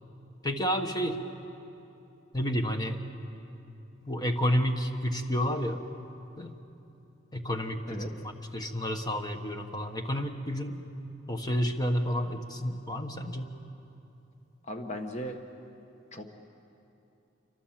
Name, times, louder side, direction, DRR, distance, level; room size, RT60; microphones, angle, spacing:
voice 1, 0.4-1.2 2.3-3.0 4.0-5.8 6.4-6.5 7.3-10.8 11.3-13.5, equal, 20° left, 5 dB, 1.4 m, -30 dB
voice 2, 14.6-15.4 16.1-16.3, equal, 35° left, 4 dB, 1.4 m, -37 dB
28.5 x 24.5 x 7.6 m, 2.9 s
head